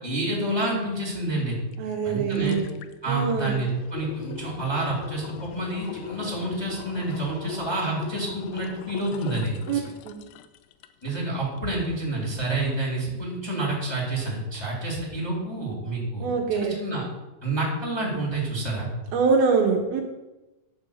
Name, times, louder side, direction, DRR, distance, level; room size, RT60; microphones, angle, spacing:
voice 1, 0.0-1.6 2.0-2.6 3.0-9.8 11.0-17.0 17.4-18.9, right 2 dB, 5° left, -3 dB, 2.3 m, -28 dB
sound 1, 1.7-1.8 2.1-11.2 11.6-11.7, left 11 dB, 85° left, 2.7 m, -40 dB
voice 2, 1.8-2.7 3.1-3.6 9.7-10.2 16.2-16.8 19.1-20.0, right 5 dB, 75° right, 2 dB, 2.6 m, -24 dB
9.8 x 5.3 x 6.9 m, 1.0 s
omnidirectional pair, 4.7 m